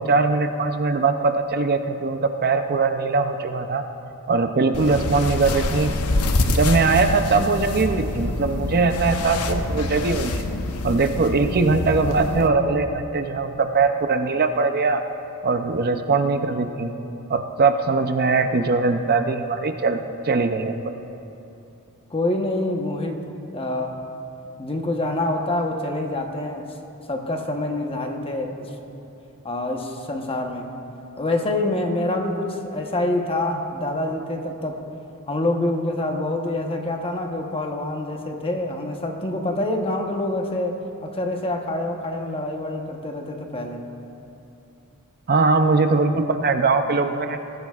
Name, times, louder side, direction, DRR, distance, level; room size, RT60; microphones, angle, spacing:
voice 1, 0.0-3.8 4.3-5.9 6.5-10.4 10.8-15.0 15.4-16.9 17.3-20.9 45.3-47.4, right 4 dB, 45° right, 7 dB, 0.6 m, -21 dB
sound 1, 4.7-12.5, left 2 dB, 75° left, 0.8 m, -26 dB
voice 2, 22.1-24.0 24.6-26.7 27.1-28.7 29.4-30.7 31.2-34.8 35.3-43.8, left 1 dB, 25° left, 3 dB, 1.0 m, -26 dB
21.0 x 13.5 x 2.4 m, 2.8 s
head